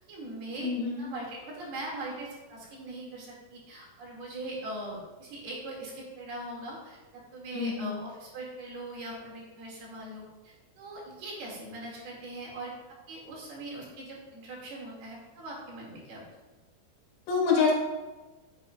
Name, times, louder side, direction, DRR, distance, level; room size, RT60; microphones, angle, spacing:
voice 1, 0.1-0.7 1.0-12.7 13.1-16.3, right 2 dB, 55° right, -4 dB, 3.6 m, -41 dB
voice 2, 0.6-1.1 7.5-8.0 17.3-17.7, left 5 dB, 90° left, -3 dB, 4.5 m, -26 dB
10.5 x 9.0 x 2.3 m, 1.2 s
omnidirectional pair, 5.9 m